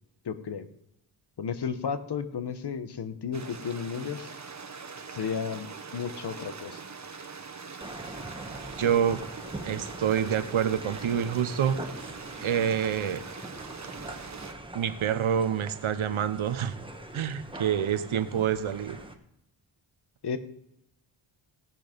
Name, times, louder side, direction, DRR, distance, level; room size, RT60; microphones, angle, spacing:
voice 1, 0.2-0.7 1.4-4.3 5.1-5.7 5.9-6.8 20.2-20.4, left 6 dB, 55° left, 11 dB, 1.1 m, -33 dB
Stream, 3.3-14.5, right 5 dB, 35° right, 1.3 m, -43 dB
sound 1, 7.8-19.1, right 1 dB, 10° right, 1.3 m, -43 dB
voice 2, 8.8-9.2 9.6-12.1 12.4-13.2 14.7-16.8 17.1-19.0, right 8 dB, 75° right, 11 dB, 1.0 m, -27 dB
17.5 x 6.0 x 5.2 m, 0.79 s
wide cardioid pair, 90°, 49 cm